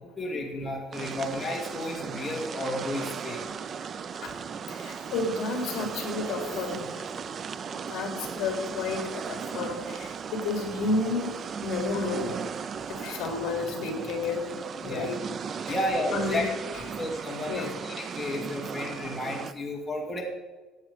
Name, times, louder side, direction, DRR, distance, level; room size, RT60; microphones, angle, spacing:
voice 1, 0.2-3.4 14.8-15.1 15.7-16.5 17.0-20.2, left 1 dB, 10° left, -2 dB, 2.4 m, -32 dB
sound 1, 0.9-19.5, right 6 dB, 30° right, 0.5 m, -37 dB
voice 2, 4.7-6.9 7.7-12.4 12.9-14.5 14.8-15.2 15.7-17.0 17.5-17.7, left 3 dB, 50° left, 3 dB, 3.5 m, -31 dB
16.0 x 8.9 x 5.0 m, 1.3 s
cardioid pair, 165°, 0 cm